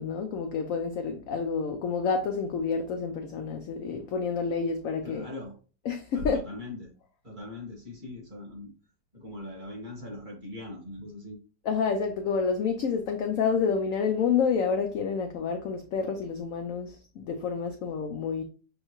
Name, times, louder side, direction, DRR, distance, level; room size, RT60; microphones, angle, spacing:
voice 1, 0.0-5.3 5.9-6.4 11.7-18.4, left 5 dB, 80° left, 0.7 m, -29 dB
voice 2, 5.0-5.5 6.1-6.9 7.2-8.7 9.1-11.4, left 2 dB, 30° right, 1.4 m, -41 dB
6.4 x 2.3 x 3.0 m
omnidirectional pair, 1.9 m